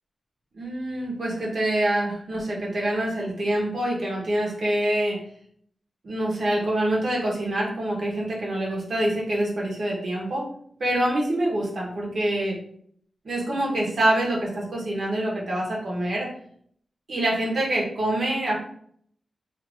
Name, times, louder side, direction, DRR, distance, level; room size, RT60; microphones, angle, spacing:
voice 1, 0.6-5.2 6.0-10.4 10.8-12.6 13.2-16.3 17.1-18.6, right 1 dB, 55° right, -3 dB, 1.0 m, -25 dB
2.7 x 2.5 x 3.4 m, 0.62 s
wide cardioid pair, 150°, 0 cm